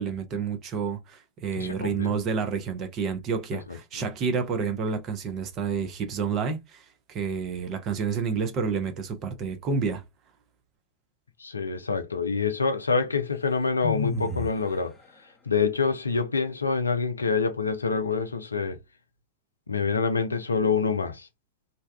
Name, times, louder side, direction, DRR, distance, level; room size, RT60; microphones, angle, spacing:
voice 1, 0.0-6.8 7.1-10.0, right 5 dB, 35° right, 0.6 m, -29 dB
voice 2, 1.6-2.1 3.5-4.1 11.4-15.0 15.5-18.8 19.7-21.3, left 5 dB, 75° left, 0.4 m, -26 dB
sound 1, 13.8-14.7, left 2 dB, 10° left, 0.8 m, -30 dB
2.6 x 2.2 x 2.2 m
figure-of-eight pair, 90°, 0 cm